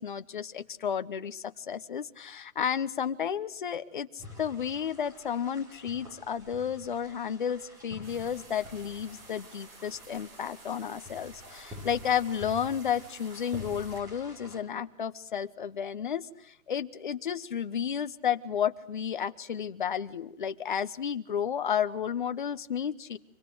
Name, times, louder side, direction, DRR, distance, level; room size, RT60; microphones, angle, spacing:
voice 1, 0.0-23.2, left 8 dB, 35° left, 12 dB, 1.0 m, -32 dB
sound 1, 4.2-14.6, left 2 dB, 10° right, 3.3 m, -48 dB
sound 2, 8.0-14.0, right 4 dB, 40° right, 4.4 m, -53 dB
26.0 x 25.5 x 7.9 m, 0.72 s
hypercardioid pair, 165°, 42 cm